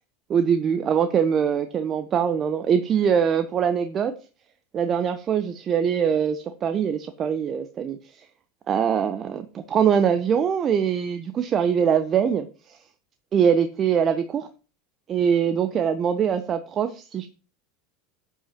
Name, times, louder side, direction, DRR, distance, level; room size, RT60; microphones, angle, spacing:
voice 1, 0.3-4.1 4.7-8.3 8.7-12.8 13.3-14.5 15.1-17.3, right 7 dB, 35° right, 9 dB, 0.8 m, -23 dB
12.0 x 8.4 x 2.9 m, 0.35 s
hypercardioid pair, 85°, 0 cm